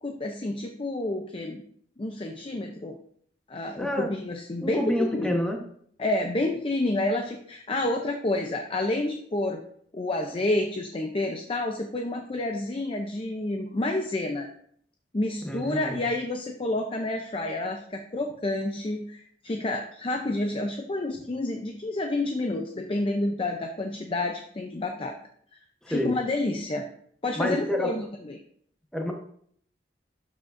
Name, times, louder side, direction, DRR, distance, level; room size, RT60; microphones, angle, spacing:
voice 1, 0.0-1.6 2.0-3.0 3.5-5.4 6.0-9.6 9.9-14.5 15.1-25.2 25.9-26.9 27.2-28.4, left 2 dB, 30° left, 3 dB, 0.5 m, -29 dB
voice 2, 3.8-4.1 4.6-5.6 15.4-15.9 25.9-26.1 27.4-27.9 28.9-29.1, left 1 dB, 5° left, 1 dB, 1.1 m, -28 dB
12.0 x 4.8 x 2.6 m, 0.63 s
head